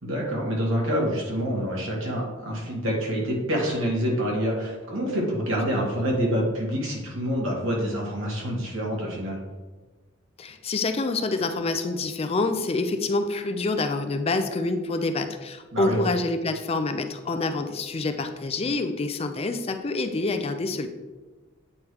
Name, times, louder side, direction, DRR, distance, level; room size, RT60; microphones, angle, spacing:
voice 1, 0.0-9.4 15.7-16.0, equal, 90° right, -2 dB, 2.0 m, -27 dB
voice 2, 10.4-20.9, left 3 dB, 30° left, 8 dB, 0.4 m, -27 dB
8.6 x 3.2 x 4.7 m, 1.2 s
head